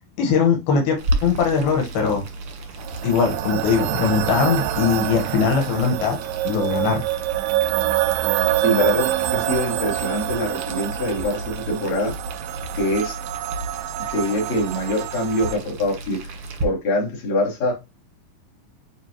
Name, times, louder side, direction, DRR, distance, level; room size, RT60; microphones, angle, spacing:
voice 1, 0.2-2.2 3.0-6.2 6.4-7.0, left 5 dB, 85° left, 3.3 m, -20 dB
Boiling, 1.0-16.6, right 1 dB, 60° right, 1.5 m, -33 dB
sound 1, 2.8-15.6, right 14 dB, 80° right, 1.9 m, -26 dB
voice 2, 8.6-12.1 12.7-13.2 14.1-16.2 16.6-17.8, left 1 dB, 50° left, 3.6 m, -24 dB
9.8 x 3.3 x 3.0 m
omnidirectional pair, 4.3 m